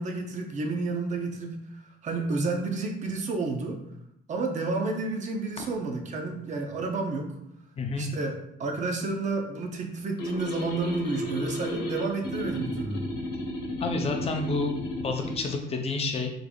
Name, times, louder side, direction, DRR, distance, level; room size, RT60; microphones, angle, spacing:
voice 1, 0.0-3.8 4.3-7.3 7.9-13.1, right 3 dB, 45° right, 2 dB, 0.6 m, -31 dB
voice 2, 7.8-8.1 13.8-16.3, left 3 dB, 35° left, 3 dB, 0.5 m, -29 dB
sound 1, 10.2-15.4, left 1 dB, 65° left, 1.0 m, -33 dB
3.7 x 3.3 x 2.3 m, 0.76 s
cardioid pair, 110°, 17 cm